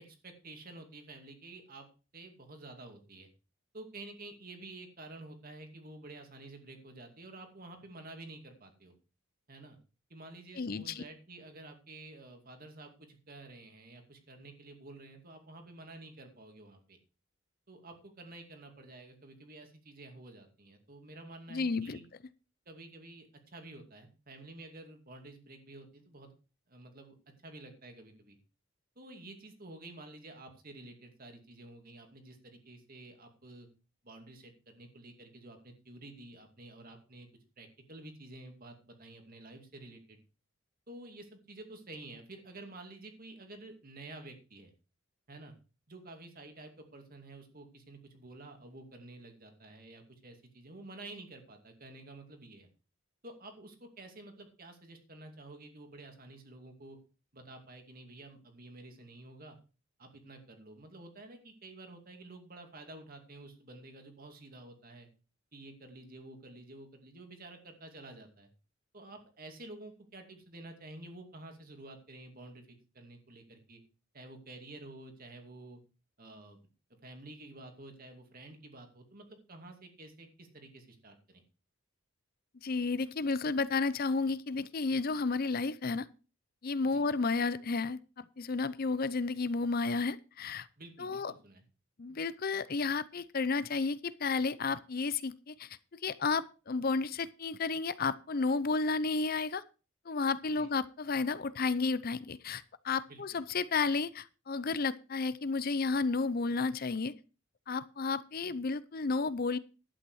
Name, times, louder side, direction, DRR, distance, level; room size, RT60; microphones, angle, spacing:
voice 1, 0.0-1.9 2.1-3.3 3.7-8.9 9.5-9.8 10.1-17.0 17.7-22.1 22.7-26.3 26.7-27.2 27.4-28.4 29.0-33.7 34.0-37.3 37.6-40.2 40.9-44.7 45.3-45.5 45.9-52.7 53.2-57.0 57.3-59.6 60.0-65.1 65.5-68.5 68.9-73.8 74.1-75.8 76.2-76.6 77.0-81.4 86.8-87.0 90.8-91.6 100.6-100.7 103.1-103.4, right 2 dB, 45° right, 5 dB, 2.5 m, -50 dB
voice 2, 10.6-11.0 21.5-22.0 82.6-86.1 86.6-90.7 91.0-91.3 92.0-99.6 100.1-107.1 107.7-109.6, left 4 dB, 45° left, 16 dB, 0.6 m, -32 dB
11.5 x 9.0 x 4.7 m, 0.33 s
head